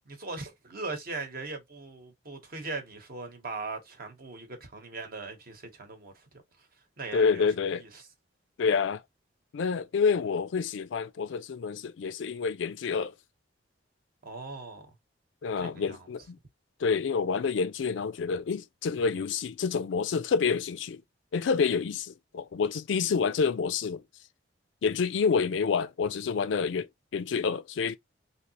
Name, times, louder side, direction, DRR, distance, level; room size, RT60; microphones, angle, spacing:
voice 1, 0.1-6.3 6.6-6.7 7.0-8.1 14.2-14.9 15.6-16.1, right 3 dB, 50° right, 1.0 m, -40 dB
voice 2, 7.1-7.8 8.6-9.0 9.5-13.1 15.4-16.4 16.8-21.0 21.3-24.0 24.8-28.0, left 5 dB, 75° left, 0.4 m, -28 dB
3.3 x 2.8 x 2.9 m
head